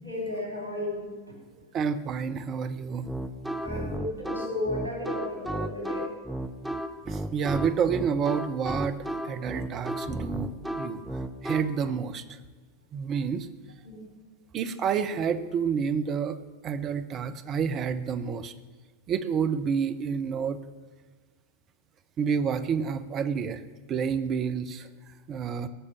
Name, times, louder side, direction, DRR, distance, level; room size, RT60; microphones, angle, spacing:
voice 1, 0.0-1.4 3.6-6.1 13.8-14.0, left 1 dB, 85° left, 0 dB, 4.8 m, -34 dB
voice 2, 1.7-3.1 7.1-9.0 9.2-11.0 11.4-12.4 12.9-13.5 14.5-16.4 16.6-18.5 19.1-20.6 22.2-23.6 23.9-24.9 25.3-25.7, right 6 dB, 30° right, 11 dB, 0.8 m, -29 dB
sound 1, 3.0-11.6, right 1 dB, ahead, 0.8 m, -33 dB
17.0 x 6.7 x 7.2 m, 1.4 s
figure-of-eight pair, 90°, 0 cm